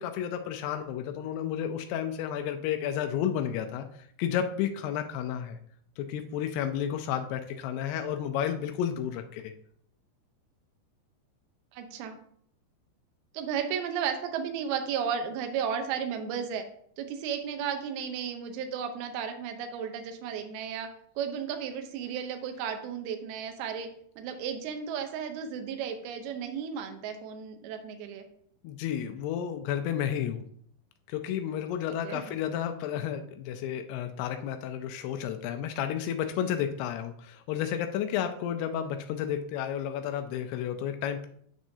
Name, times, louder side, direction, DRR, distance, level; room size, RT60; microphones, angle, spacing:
voice 1, 0.0-5.6 6.0-9.5 28.6-30.4 31.1-41.3, left 9 dB, 85° left, 6 dB, 2.3 m, -32 dB
voice 2, 11.7-12.2 13.3-16.6 17.0-20.9 21.2-23.9 24.2-28.3 32.0-32.3, right 7 dB, 75° right, 6 dB, 2.4 m, -34 dB
9.3 x 6.1 x 2.8 m, 0.65 s
omnidirectional pair, 5.2 m